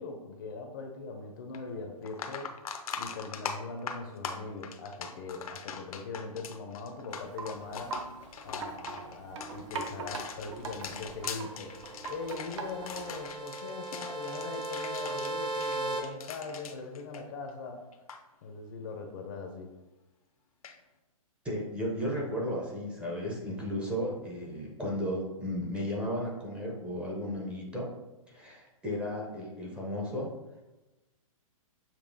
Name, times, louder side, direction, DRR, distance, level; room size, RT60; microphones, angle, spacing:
voice 1, 0.0-2.6 3.0-8.0 8.4-11.8 12.1-17.9 18.4-19.7, left 4 dB, 35° left, 4 dB, 0.5 m, -41 dB
sound 1, 1.5-1.6 2.0-17.7 17.9-18.2 20.6-20.8, left 6 dB, 80° left, 0.6 m, -41 dB
Wind chime, 7.1-13.3, right 4 dB, 55° right, 0.7 m, -42 dB
sound 2, 11.1-16.0, right 2 dB, 80° right, 1.1 m, -38 dB
voice 2, 21.4-27.9 28.3-30.3, equal, 5° right, -4 dB, 0.6 m, -34 dB
6.8 x 2.8 x 2.6 m, 1.0 s
hypercardioid pair, 160°, 18 cm